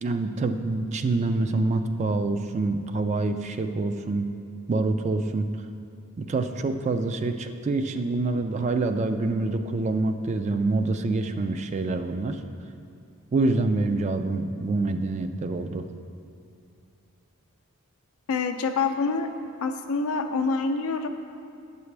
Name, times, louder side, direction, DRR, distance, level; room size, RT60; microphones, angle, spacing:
voice 1, 0.0-4.3 4.7-5.5 6.2-12.4 13.3-15.9, right 3 dB, 30° right, 8 dB, 0.3 m, -26 dB
voice 2, 18.3-19.3 19.6-21.1, left 4 dB, 75° left, 7 dB, 0.5 m, -26 dB
8.7 x 6.9 x 3.3 m, 2.6 s
head